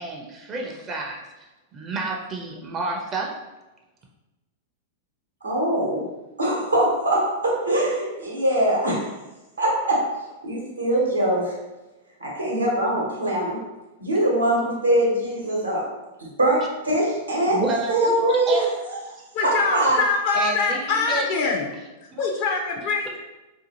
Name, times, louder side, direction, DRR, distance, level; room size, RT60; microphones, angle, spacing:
voice 1, 0.0-3.3 17.5-18.1 18.5-18.7 20.3-21.3 22.2-22.3, right 3 dB, 30° right, 0 dB, 0.4 m, -30 dB
voice 2, 5.4-6.1 6.4-9.1 9.6-10.1 10.4-11.6 12.2-13.6 14.0-15.8 16.4-17.6 17.9-18.6 19.4-20.0, right 1 dB, 90° right, -3 dB, 0.8 m, -22 dB
voice 3, 19.3-21.6 22.2-23.2, left 4 dB, 55° left, 1 dB, 0.4 m, -24 dB
2.6 x 2.3 x 2.7 m, 1.1 s
figure-of-eight pair, 100°, 0 cm